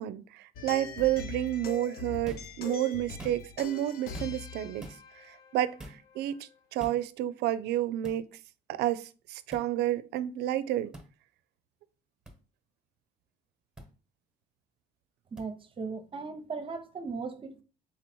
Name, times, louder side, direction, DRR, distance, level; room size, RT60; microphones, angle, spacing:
voice 1, 0.0-4.9 5.2-8.2 8.7-10.9, right 13 dB, 75° right, 0.4 m, -30 dB
sound 1, 0.5-6.3, left 6 dB, 65° left, 0.8 m, -42 dB
sound 2, 2.2-2.6 3.1-3.6 4.1-4.5 4.8-5.0 5.8-6.0 6.8-7.0 8.0-8.2 9.5-9.7 10.9-11.1 12.3-12.4 13.8-13.9 15.4-15.5, right 1 dB, 5° right, 1.1 m, -45 dB
voice 2, 15.3-17.6, right 4 dB, 30° right, 0.7 m, -38 dB
3.9 x 3.1 x 4.2 m
cardioid pair, 110°, 17 cm